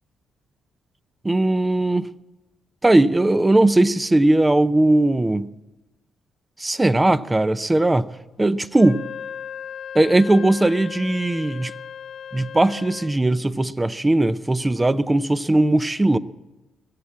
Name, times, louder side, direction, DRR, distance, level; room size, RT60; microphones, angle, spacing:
voice 1, 1.2-2.1 2.8-5.5 6.6-8.1 8.4-9.0 9.9-11.7 12.3-16.2, right 2 dB, 20° right, 0.6 m, -18 dB
Wind instrument woodwind instrument, 8.7-13.2, left 8 dB, 60° left, 0.5 m, -37 dB
22.0 x 7.4 x 8.5 m
hypercardioid pair, 45°, 0 cm